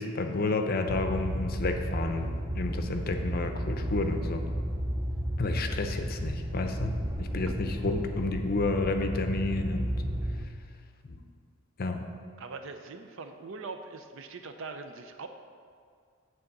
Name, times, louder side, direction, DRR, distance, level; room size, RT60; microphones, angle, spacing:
voice 1, 0.0-4.4 5.4-6.9 7.2-9.9 11.1-11.2 11.8-12.1, left 3 dB, 45° left, 6 dB, 0.6 m, -30 dB
sound 1, 0.9-10.5, equal, 15° right, 0.4 m, -33 dB
voice 2, 12.4-15.3, right 4 dB, 60° right, 7 dB, 0.6 m, -42 dB
8.6 x 3.9 x 6.6 m, 2.2 s
head